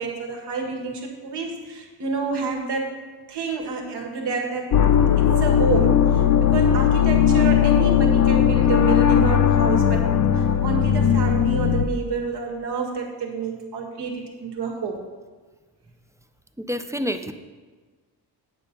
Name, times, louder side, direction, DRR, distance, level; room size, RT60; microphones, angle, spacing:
voice 1, 0.0-2.9 3.3-10.1 10.3-15.0, right 4 dB, 85° right, 2 dB, 1.8 m, -29 dB
sound 1, 4.7-11.9, left 9 dB, 45° left, 0.6 m, -18 dB
voice 2, 16.6-17.3, equal, 10° right, 8 dB, 0.3 m, -28 dB
9.2 x 6.7 x 5.3 m, 1.4 s
cardioid pair, 130°, 39 cm